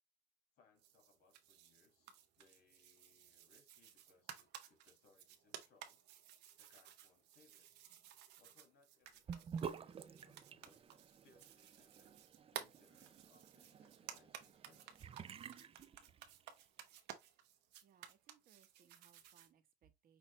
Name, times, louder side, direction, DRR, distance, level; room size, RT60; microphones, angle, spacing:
voice 1, 0.6-6.0 6.6-7.7 8.4-12.2 12.5-15.2, left 4 dB, 65° left, 2.1 m, -72 dB
sound 1, 0.8-19.5, right 10 dB, 85° right, 0.9 m, -56 dB
Sink (filling or washing) / Bathtub (filling or washing), 9.3-16.6, right 7 dB, 35° right, 0.5 m, -51 dB
voice 2, 17.8-20.2, right 8 dB, 55° right, 1.0 m, -70 dB
6.0 x 2.6 x 3.1 m
cardioid pair, 110°, 17 cm